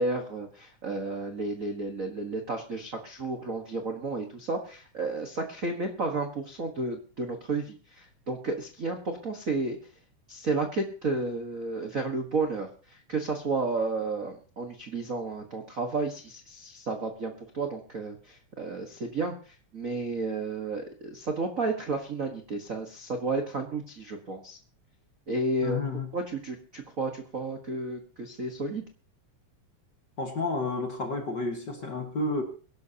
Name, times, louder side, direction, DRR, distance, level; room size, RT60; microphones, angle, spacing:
voice 1, 0.0-9.8 10.3-12.7 13.1-19.3 19.7-24.6 25.3-25.8 26.1-28.8, right 3 dB, 45° right, 4 dB, 1.1 m, -32 dB
voice 2, 25.6-26.1 30.2-32.4, left 2 dB, 40° left, 3 dB, 1.8 m, -31 dB
23.5 x 12.0 x 2.9 m, 0.38 s
omnidirectional pair, 3.6 m